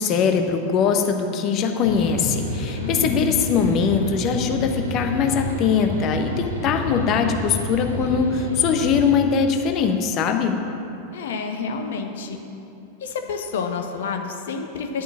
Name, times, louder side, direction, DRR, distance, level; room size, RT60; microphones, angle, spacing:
voice 1, 0.0-10.6, left 6 dB, 35° left, 5 dB, 1.1 m, -21 dB
sound 1, 1.8-9.2, left 1 dB, 75° right, 1.7 m, -29 dB
voice 2, 2.8-3.3 11.1-12.4 13.0-15.0, left 5 dB, 60° left, 5 dB, 1.2 m, -29 dB
11.5 x 8.2 x 7.3 m, 2.9 s
figure-of-eight pair, 90°, 0 cm